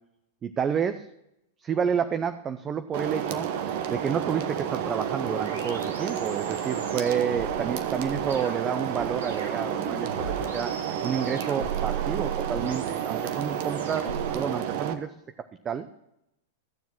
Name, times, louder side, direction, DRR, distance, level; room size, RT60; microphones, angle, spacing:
voice 1, 0.4-1.1 1.6-3.5 3.9-10.7 11.0-15.1 15.6-15.9, right 7 dB, 25° right, 10 dB, 0.6 m, -30 dB
sound 1, 2.9-14.9, right 9 dB, 55° right, 1.2 m, -30 dB
sound 2, 4.6-14.4, right 5 dB, 80° right, 3.9 m, -38 dB
14.5 x 7.1 x 6.1 m, 0.84 s
hypercardioid pair, 100°, 0 cm